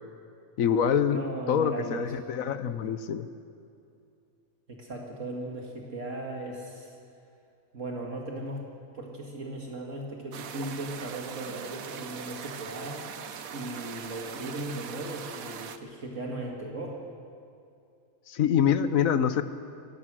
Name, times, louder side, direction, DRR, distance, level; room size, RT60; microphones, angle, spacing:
voice 1, 0.6-1.2 1.5-3.3 18.3-19.4, left 8 dB, 75° left, 12 dB, 1.3 m, -25 dB
voice 2, 1.1-2.1 4.7-7.0 7.7-8.6 8.9-13.0 13.5-17.0, right 1 dB, 65° right, 0 dB, 2.4 m, -37 dB
sound 1, 10.3-15.8, right 7 dB, 85° right, 1.4 m, -41 dB
23.5 x 18.0 x 6.3 m, 2.5 s
omnidirectional pair, 1.4 m